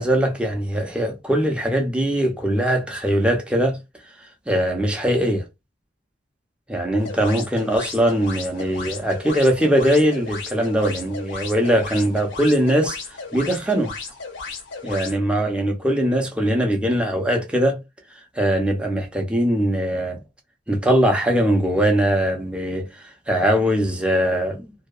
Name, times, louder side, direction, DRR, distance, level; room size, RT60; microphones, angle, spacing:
voice 1, 0.0-3.8 4.5-5.5 6.7-13.0 13.3-13.9 14.8-17.8 18.4-20.2 20.7-24.7, equal, 5° right, 0.5 m, -21 dB
sound 1, 7.0-15.2, left 4 dB, 80° left, 0.8 m, -35 dB
2.7 x 2.2 x 2.3 m
head